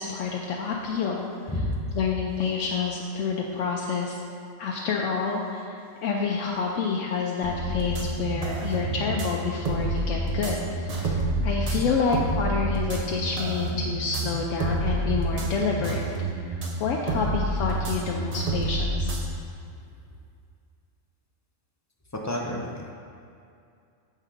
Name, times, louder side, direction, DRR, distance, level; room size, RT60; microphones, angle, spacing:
voice 1, 0.0-1.3 2.0-4.2 4.6-16.1 16.5-19.2, left 5 dB, 80° left, -1 dB, 0.9 m, -28 dB
voice 2, 1.5-1.8 11.0-11.2 22.1-22.9, left 1 dB, 25° left, -1 dB, 0.4 m, -30 dB
sound 1, 7.4-19.3, right 2 dB, 40° right, 0.7 m, -28 dB
7.6 x 3.7 x 4.9 m, 2.4 s
omnidirectional pair, 1.3 m